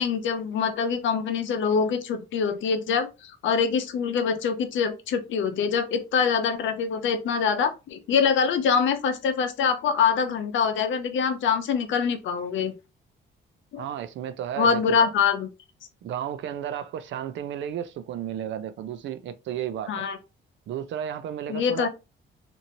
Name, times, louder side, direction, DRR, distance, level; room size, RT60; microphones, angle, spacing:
voice 1, 0.0-12.7 13.7-13.9 14.6-15.5 19.9-20.2 21.5-21.9, left 6 dB, 75° left, 0.6 m, -24 dB
voice 2, 13.8-15.1 16.0-20.1 20.7-21.9, right 10 dB, 70° right, 0.5 m, -33 dB
2.9 x 2.6 x 2.6 m
cardioid pair, 90°, 20 cm